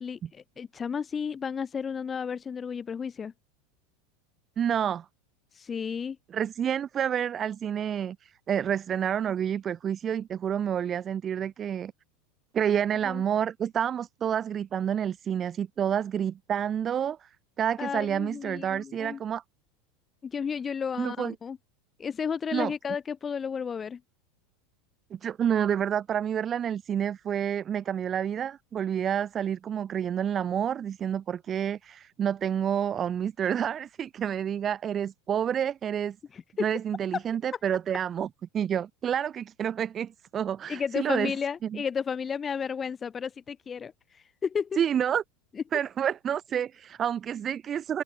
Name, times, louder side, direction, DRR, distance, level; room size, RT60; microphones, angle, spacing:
voice 1, 0.0-3.3 5.5-6.2 13.0-13.2 17.8-19.2 20.2-21.6 22.0-24.0 36.3-36.4 37.1-37.2 40.7-44.8, left 6 dB, 25° left, 1.8 m, -33 dB
voice 2, 4.6-5.0 6.3-11.9 12.5-17.3 17.6-19.4 21.0-21.3 22.5-22.7 25.1-36.2 36.6-38.3 38.5-41.3 41.6-41.8 44.8-45.2 45.7-48.0, right 9 dB, 30° right, 1.1 m, -29 dB
figure-of-eight pair, 85°, 0 cm